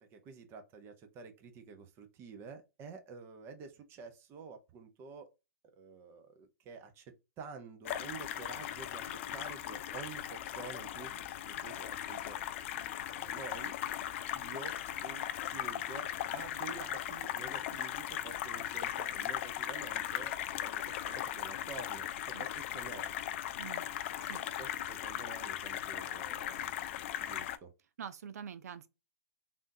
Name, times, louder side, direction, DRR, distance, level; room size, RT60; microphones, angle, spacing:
voice 1, 0.0-5.3 5.8-12.4 13.1-13.8 14.3-14.8 15.0-15.3 15.5-23.2 24.3-26.7 27.2-27.7, right 5 dB, 25° right, 0.7 m, -49 dB
sound 1, 7.8-27.6, left 11 dB, 45° left, 0.4 m, -38 dB
voice 2, 28.0-28.9, right 7 dB, 65° right, 0.5 m, -45 dB
3.5 x 2.6 x 2.6 m
hypercardioid pair, 130°, 9 cm